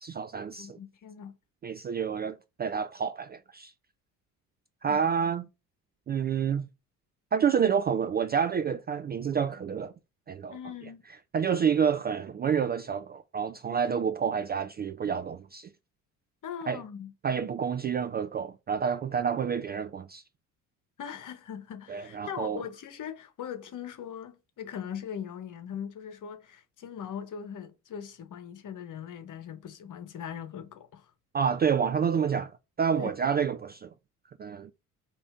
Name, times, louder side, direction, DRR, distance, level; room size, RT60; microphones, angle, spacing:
voice 1, 0.0-0.8 1.6-3.7 4.8-5.5 6.1-6.7 7.3-9.9 10.3-10.6 11.3-15.7 16.7-16.8 17.2-20.2 21.9-22.6 31.3-32.5 32.8-33.9 34.4-34.7, right 7 dB, 25° right, 0.4 m, -28 dB
voice 2, 0.6-1.3 4.9-5.0 10.5-11.0 16.4-17.1 21.0-31.1 32.9-33.1, left 8 dB, 45° left, 1.3 m, -40 dB
4.9 x 2.9 x 3.6 m
hypercardioid pair, 55°, 44 cm